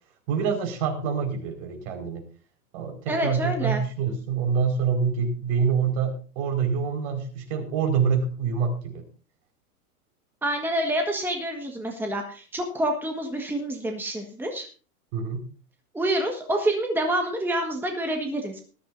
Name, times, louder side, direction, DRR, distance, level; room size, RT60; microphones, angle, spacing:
voice 1, 0.3-2.2 2.7-9.0 15.1-15.4, right 6 dB, 50° right, 4 dB, 5.2 m, -26 dB
voice 2, 3.1-3.8 10.4-14.7 15.9-18.6, right 1 dB, 5° right, 3 dB, 1.6 m, -27 dB
20.0 x 12.0 x 2.7 m, 0.38 s
hypercardioid pair, 125°, 45 cm